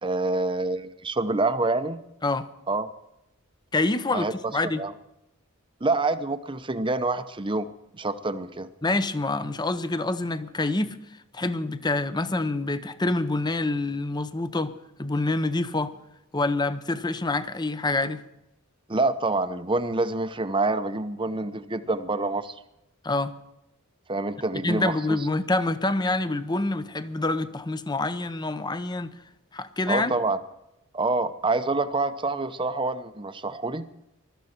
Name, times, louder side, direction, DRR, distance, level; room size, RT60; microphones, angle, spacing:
voice 1, 0.0-2.0 2.7-2.9 4.1-4.3 4.6-4.9 5.8-7.7 7.9-8.7 18.9-22.6 24.1-25.0 29.9-30.4 30.9-33.9, right 2 dB, 25° right, 10 dB, 0.7 m, -26 dB
voice 2, 3.7-4.8 8.8-11.0 11.3-15.9 16.3-18.2 23.0-23.4 24.6-29.2 29.5-30.1, left 2 dB, 20° left, 12 dB, 0.7 m, -26 dB
20.0 x 13.0 x 4.4 m, 0.89 s
head